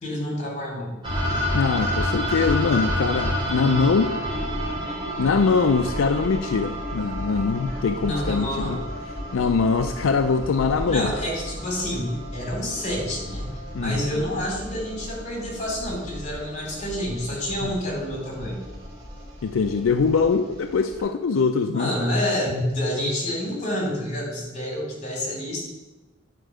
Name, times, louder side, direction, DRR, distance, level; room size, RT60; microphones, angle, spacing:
voice 1, 0.0-1.0 8.0-8.8 10.9-18.6 21.7-25.6, left 1 dB, 40° left, 0 dB, 2.9 m, -28 dB
sound 1, 1.0-21.0, equal, 25° right, 3.3 m, -31 dB
voice 2, 1.5-4.1 5.2-8.8 9.3-11.1 13.7-14.0 17.6-17.7 19.4-21.9, left 5 dB, 85° left, 8 dB, 0.4 m, -22 dB
9.9 x 4.6 x 6.2 m, 1.1 s
head